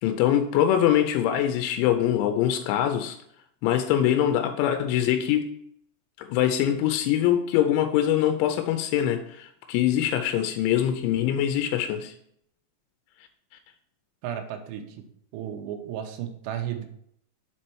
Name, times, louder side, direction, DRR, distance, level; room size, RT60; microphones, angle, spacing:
voice 1, 0.0-3.2 3.6-5.5 6.2-12.1, left 11 dB, 90° left, 7 dB, 3.0 m, -23 dB
voice 2, 14.2-14.8 15.3-16.9, right 10 dB, 80° right, 4 dB, 2.8 m, -33 dB
6.9 x 4.3 x 4.5 m, 0.70 s
omnidirectional pair, 5.3 m